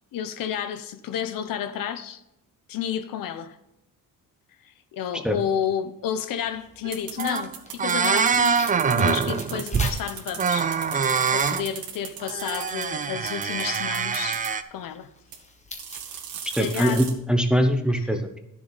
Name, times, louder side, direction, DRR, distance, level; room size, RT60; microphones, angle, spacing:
voice 1, 0.1-2.2 2.7-3.6 4.6-11.0 11.3-14.4 14.7-15.1 16.4-17.1 17.9-18.1, left 9 dB, 70° left, 0.9 m, -31 dB
Tearing, 6.4-17.2, left 2 dB, 20° left, 1.3 m, -45 dB
sound 1, 6.8-6.9 7.2-7.5 7.8-10.0 10.4-11.6 12.2-14.6, right 6 dB, 25° right, 0.4 m, -24 dB
sound 2, 6.9-12.9 13.3-14.5 15.3-15.4 15.8-17.1, right 8 dB, 75° right, 2.1 m, -37 dB
voice 2, 16.5-18.4, equal, ahead, 0.9 m, -22 dB
13.0 x 7.1 x 4.1 m
cardioid pair, 155°, 35 cm